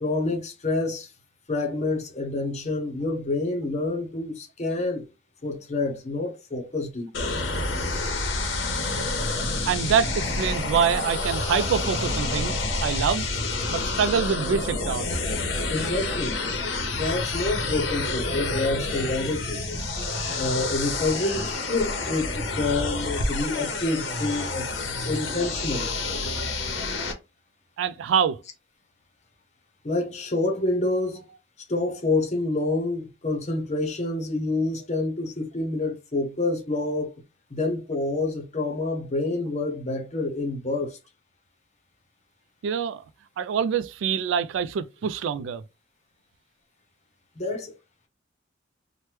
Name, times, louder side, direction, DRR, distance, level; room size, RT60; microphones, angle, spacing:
voice 1, 0.0-1.1 1.5-5.1 5.4-7.4 15.7-16.4 16.9-19.9 20.3-24.7 25.0-25.9 29.8-31.2 31.7-37.1 37.5-41.0 47.4-47.7, left 2 dB, 35° left, 0.7 m, -28 dB
sound 1, 7.1-27.1, left 2 dB, 90° left, 0.8 m, -28 dB
voice 2, 9.6-13.3 13.7-15.1 27.8-28.4 42.6-43.0 43.4-45.6, right 7 dB, 90° right, 0.3 m, -25 dB
3.0 x 2.1 x 3.2 m
head